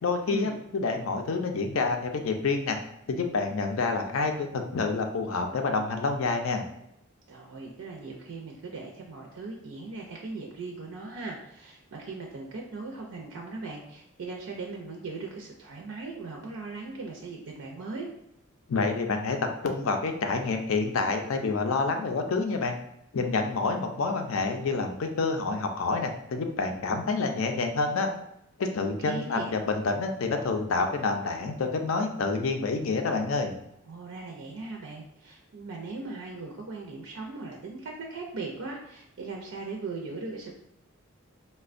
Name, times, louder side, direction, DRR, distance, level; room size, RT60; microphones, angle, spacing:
voice 1, 0.0-2.8 3.1-6.7 18.7-19.4 19.6-22.7 23.1-28.1 28.6-33.5, left 4 dB, 80° left, 5 dB, 0.4 m, -28 dB
voice 2, 7.3-18.1 28.8-29.5 33.9-40.5, right 3 dB, 80° right, 0 dB, 0.5 m, -39 dB
4.0 x 2.1 x 2.4 m, 0.80 s
head